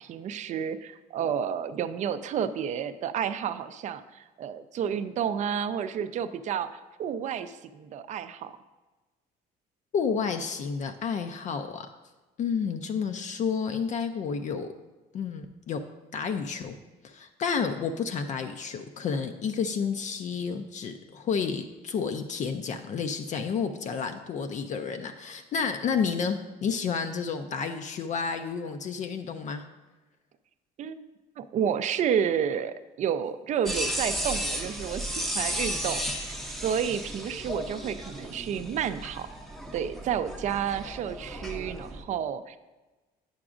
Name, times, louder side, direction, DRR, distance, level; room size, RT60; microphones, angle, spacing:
voice 1, 0.0-6.7 7.0-8.5 30.8-31.0 31.4-39.3 39.7-42.6, right 8 dB, 45° right, 11 dB, 0.4 m, -30 dB
voice 2, 9.9-11.9 12.4-14.7 15.1-15.8 16.1-16.8 17.0-29.6, left 6 dB, 45° left, 7 dB, 0.4 m, -30 dB
sound 1, 33.7-42.0, equal, ahead, 0.6 m, -34 dB
8.7 x 5.9 x 2.5 m, 1.2 s
cardioid pair, 110°, 17 cm